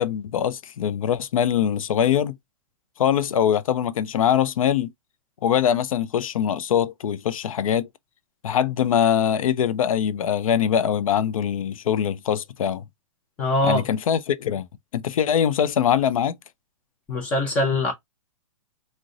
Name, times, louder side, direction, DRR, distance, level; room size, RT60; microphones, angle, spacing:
voice 1, 0.0-2.4 3.0-4.9 5.4-7.9 8.4-12.8 13.6-14.7 14.9-16.4, left 9 dB, 80° left, 0.4 m, -22 dB
voice 2, 13.4-13.8 17.1-17.9, left 2 dB, 10° left, 0.4 m, -22 dB
2.5 x 2.1 x 3.6 m
hypercardioid pair, 175°, 17 cm